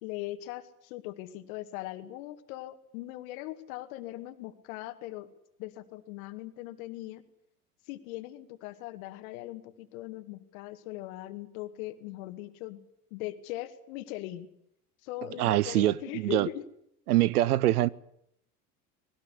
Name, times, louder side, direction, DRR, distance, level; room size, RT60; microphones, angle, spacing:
voice 1, 0.0-5.3 5.6-7.2 7.9-12.8 13.1-14.5 15.0-16.6, left 16 dB, 65° left, 2.2 m, -40 dB
voice 2, 15.4-16.5 17.1-17.9, right 15 dB, 75° right, 0.9 m, -24 dB
20.0 x 18.0 x 10.0 m
hypercardioid pair, 80°, 45 cm